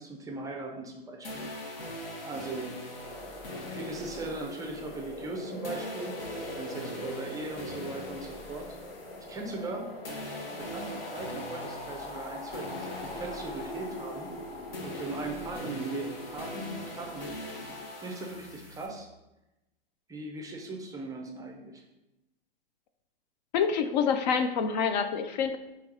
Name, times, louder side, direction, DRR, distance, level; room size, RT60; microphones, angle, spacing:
voice 1, 0.0-1.5 2.2-3.0 3.7-6.2 6.5-8.7 9.3-9.9 10.5-14.3 14.8-17.3 17.9-19.1 20.1-21.8, right 2 dB, 10° right, 2 dB, 0.5 m, -39 dB
sound 1, 1.2-9.8 10.0-18.9, left 1 dB, 70° left, 1.3 m, -42 dB
sound 2, 3.0-17.8, left 1 dB, 90° left, 1.3 m, -43 dB
voice 2, 23.5-25.6, left 6 dB, 50° left, 8 dB, 0.4 m, -27 dB
4.5 x 2.9 x 3.9 m, 0.96 s
hypercardioid pair, 115°, 30 cm